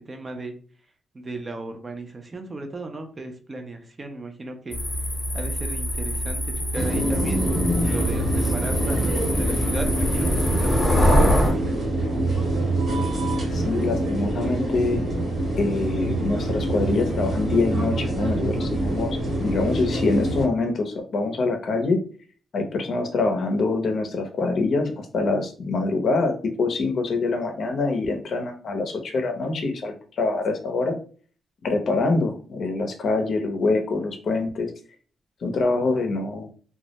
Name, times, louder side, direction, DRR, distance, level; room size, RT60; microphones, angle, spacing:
voice 1, 0.1-0.5 1.1-4.8 5.3-7.5 7.8-11.7, right 2 dB, 30° right, 5 dB, 0.5 m, -36 dB
sound 1, 4.7-11.5, equal, 25° left, 0.8 m, -24 dB
sound 2, 6.7-20.5, right 1 dB, 60° right, 1.1 m, -25 dB
voice 2, 13.5-15.0 15.6-22.0 22.5-26.3 26.6-30.9 31.6-34.7 35.4-36.5, left 3 dB, 65° left, 5 dB, 0.5 m, -25 dB
2.2 x 2.0 x 2.8 m, 0.42 s
cardioid pair, 95°, 0 cm